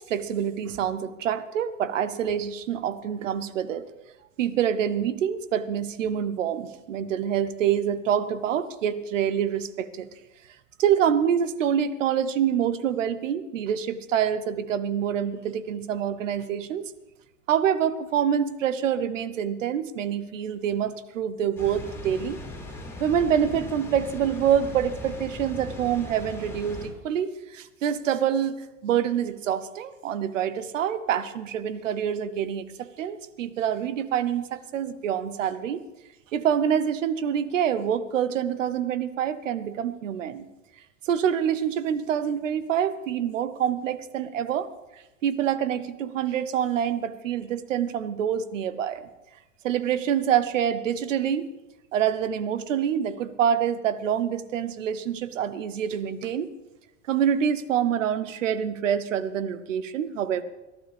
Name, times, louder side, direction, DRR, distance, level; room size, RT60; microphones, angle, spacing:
voice 1, 0.0-3.9 4.4-10.1 10.8-16.9 17.5-22.4 23.0-28.6 28.8-35.8 36.3-40.5 41.0-44.7 45.2-49.0 49.6-51.5 51.9-56.5 57.1-60.4, right 9 dB, 85° right, 14 dB, 1.0 m, -26 dB
Water, 21.6-26.9, left 1 dB, 5° left, 4.8 m, -39 dB
21.5 x 12.0 x 3.5 m, 0.99 s
hypercardioid pair, 100°, 37 cm